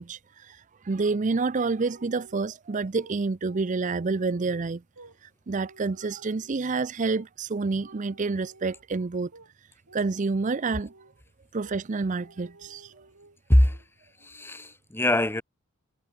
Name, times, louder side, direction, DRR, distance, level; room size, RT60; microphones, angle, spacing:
voice 1, 0.0-4.8 5.2-9.3 9.9-10.9 11.5-12.9, right 4 dB, 35° right, 0.5 m, -28 dB
sound 1, 1.8-2.6 2.9-3.2 3.5-5.2 5.5-6.6 7.1-7.3 7.7-8.9 9.3-9.5 9.9-11.2 11.6-11.8 12.1-13.4 13.7-13.9 14.2-14.7, right 2 dB, 70° right, 3.3 m, -53 dB
voice 2, 14.2-15.4, left 1 dB, 10° left, 1.1 m, -22 dB
head